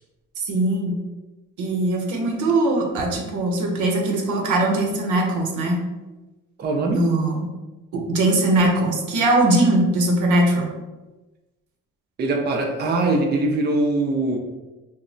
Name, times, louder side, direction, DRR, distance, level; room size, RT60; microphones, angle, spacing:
voice 1, 0.4-1.0 1.6-5.8 6.9-7.5 7.9-10.7, right 1 dB, 75° right, 1 dB, 0.7 m, -21 dB
voice 2, 6.6-7.0 12.2-14.4, right 2 dB, 35° right, 1 dB, 0.4 m, -22 dB
2.0 x 2.0 x 3.7 m, 1.1 s
cardioid pair, 90°, 30 cm